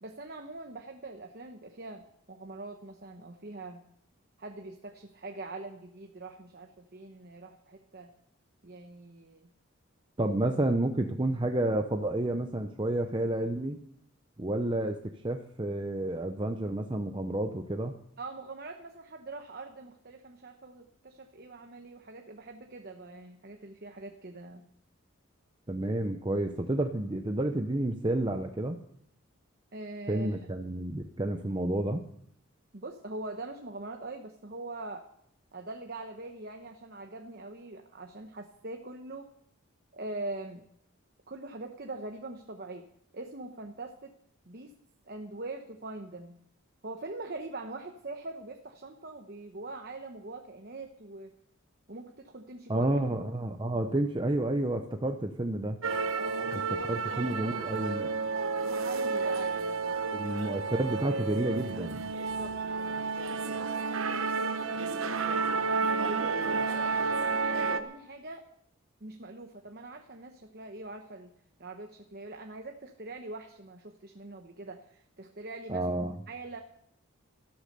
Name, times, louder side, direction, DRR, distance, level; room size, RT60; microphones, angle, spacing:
voice 1, 0.0-3.8 4.4-8.1 8.6-9.5 18.2-24.6 29.7-30.4 32.7-35.1 35.5-39.3 39.9-40.6 41.3-42.9 43.1-44.1 44.5-44.7 45.1-46.4 46.8-51.3 51.9-52.9 56.2-56.5 56.8-57.7 58.0-60.9 62.2-63.0 63.3-65.4 66.0-68.5 69.0-71.3 71.6-76.6, right 2 dB, 45° right, 4 dB, 1.0 m, -43 dB
voice 2, 10.2-13.8 14.4-15.0 15.2-17.9 25.7-28.8 30.1-32.0 52.7-55.8 56.5-58.1 60.1-62.1 75.7-76.2, right 1 dB, 20° right, 5 dB, 0.7 m, -30 dB
sound 1, 55.8-67.8, right 4 dB, 70° right, 1.0 m, -31 dB
13.5 x 12.0 x 6.7 m, 0.72 s
head